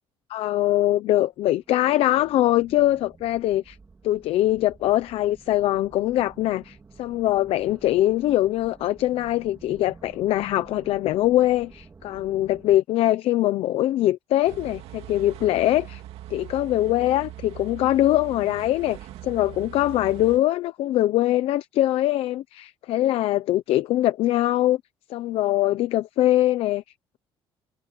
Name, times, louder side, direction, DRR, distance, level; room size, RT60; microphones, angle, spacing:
voice 1, 0.3-3.8 4.0-16.0 16.3-24.8 25.1-26.8, left 14 dB, 65° left, 0.8 m, -22 dB
sound 1, 1.4-12.8, right 4 dB, 20° right, 3.9 m, -51 dB
sound 2, 14.5-20.4, right 13 dB, 70° right, 2.3 m, -41 dB
cardioid pair, 160°, 10 cm